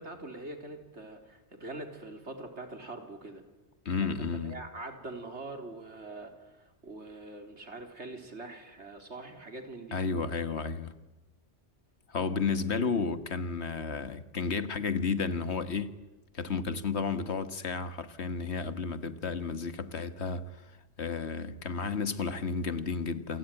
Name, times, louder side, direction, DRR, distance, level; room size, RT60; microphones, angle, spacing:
voice 1, 0.0-3.4 4.0-10.0, right 2 dB, 90° right, 4.0 m, -43 dB
voice 2, 3.9-4.6 9.9-10.9 12.1-16.0 16.3-20.6 21.0-23.4, left 5 dB, 75° left, 1.8 m, -32 dB
28.0 x 23.5 x 9.2 m
omnidirectional pair, 1.1 m